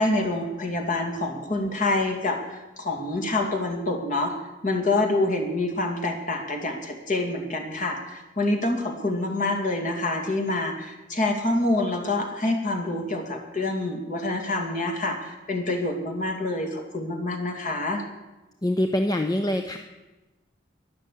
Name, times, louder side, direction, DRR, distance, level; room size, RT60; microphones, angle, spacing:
voice 1, 0.0-4.3 4.6-18.0, left 2 dB, 40° left, 4 dB, 2.3 m, -26 dB
voice 2, 18.6-19.8, left 1 dB, 20° left, 6 dB, 0.6 m, -24 dB
12.5 x 11.0 x 8.4 m, 1.1 s
head